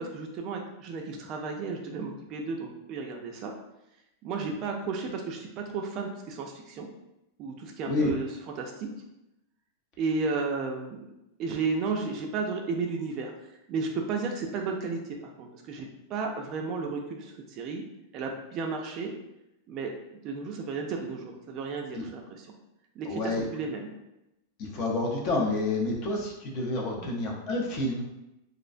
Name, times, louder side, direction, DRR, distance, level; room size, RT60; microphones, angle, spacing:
voice 1, 0.0-3.5 4.2-6.9 7.4-8.9 10.0-11.0 11.4-13.3 13.7-17.8 18.1-19.1 19.7-19.9 20.2-22.5 23.0-23.9 27.0-27.1, right 4 dB, 40° right, 1 dB, 0.3 m, -33 dB
voice 2, 23.1-23.4 24.6-28.1, left 2 dB, 45° left, -1 dB, 0.6 m, -29 dB
2.4 x 2.1 x 2.4 m, 0.90 s
supercardioid pair, 140°, 0 cm